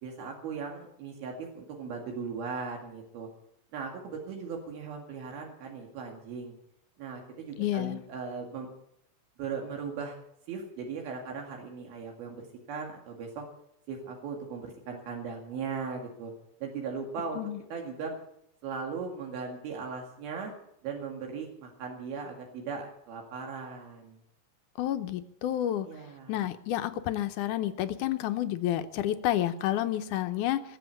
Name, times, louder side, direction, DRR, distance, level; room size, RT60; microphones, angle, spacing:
voice 1, 0.0-3.3 3.7-6.6 7.0-8.7 9.4-10.2 10.5-13.5 13.9-16.3 16.6-17.4 17.7-18.2 18.6-20.5 20.8-24.2 25.9-26.4, right 5 dB, 80° right, 1 dB, 4.0 m, -38 dB
voice 2, 7.6-8.0 17.4-17.6 24.8-25.9 26.3-30.6, left 12 dB, 75° left, 9 dB, 2.0 m, -30 dB
20.5 x 7.9 x 8.3 m, 0.76 s
omnidirectional pair, 4.3 m